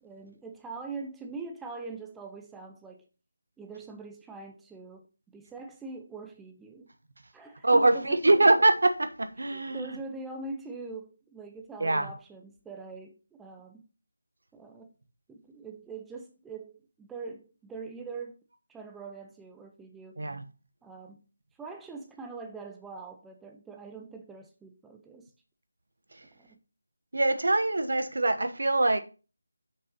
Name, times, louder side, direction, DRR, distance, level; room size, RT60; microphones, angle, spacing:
voice 1, 0.0-3.1 3.6-6.9 7.3-8.4 9.4-13.9 14.5-14.9 15.3-18.4 18.7-20.2 20.8-21.2 21.6-25.3 26.4-26.6, right 4 dB, 5° right, 0.5 m, -43 dB
voice 2, 7.6-9.9 11.8-12.1 20.2-20.4 27.1-29.0, right 2 dB, 65° right, 1.1 m, -23 dB
6.5 x 5.6 x 5.5 m
figure-of-eight pair, 160°, 0 cm